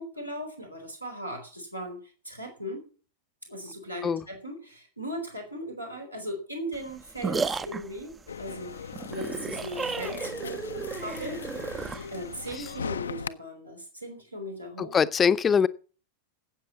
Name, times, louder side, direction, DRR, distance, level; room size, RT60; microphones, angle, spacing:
voice 1, 0.0-2.8 3.5-8.1 8.4-11.8 12.1-14.9, equal, 90° right, 4.4 m, -38 dB
sound 1, 6.7-12.8, right 5 dB, 15° right, 0.6 m, -34 dB
sound 2, 8.3-13.3, left 6 dB, 70° left, 0.5 m, -39 dB
voice 2, 14.8-15.7, left 7 dB, 20° left, 0.7 m, -23 dB
13.0 x 8.4 x 7.1 m
figure-of-eight pair, 90°, 0 cm